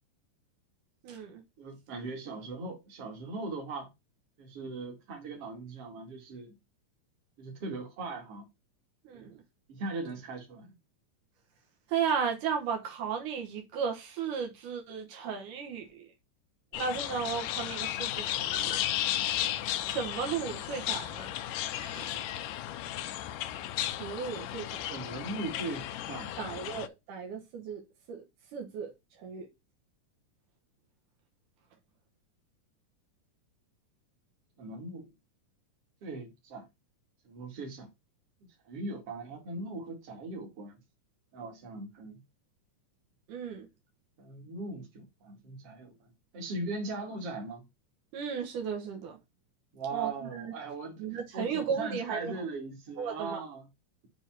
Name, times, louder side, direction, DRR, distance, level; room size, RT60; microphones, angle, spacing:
voice 1, 1.0-1.4 9.0-9.4 11.9-16.1 16.7-18.8 19.8-22.3 24.0-24.8 26.4-27.8 28.1-28.2 28.5-29.5 43.3-43.7 48.1-49.2 49.9-50.5 51.0-52.4 53.0-53.4, right 6 dB, 80° right, 2.7 m, -35 dB
voice 2, 1.6-3.9 4.4-6.6 7.4-8.4 9.1-9.3 9.7-10.7 24.9-26.6 34.6-35.1 36.0-36.7 37.2-37.9 38.6-40.8 41.3-42.2 44.2-46.1 46.3-47.6 49.7-51.1 51.3-53.7, right 3 dB, 50° right, 2.8 m, -39 dB
sound 1, 16.7-26.9, left 13 dB, 85° left, 2.1 m, -34 dB
7.2 x 3.4 x 5.8 m
omnidirectional pair, 3.6 m